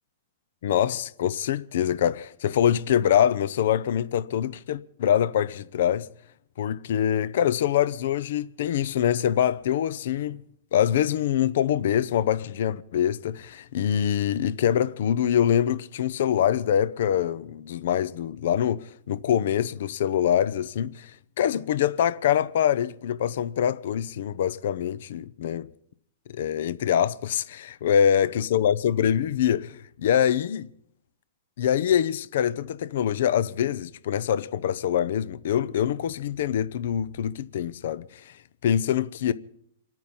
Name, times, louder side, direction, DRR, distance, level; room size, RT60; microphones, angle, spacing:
voice 1, 0.6-6.1 6.6-10.4 10.7-25.7 26.3-30.7 31.6-38.4 38.6-39.3, left 9 dB, 70° left, 0.7 m, -24 dB
27.5 x 9.3 x 5.5 m
hypercardioid pair, 125°, 0 cm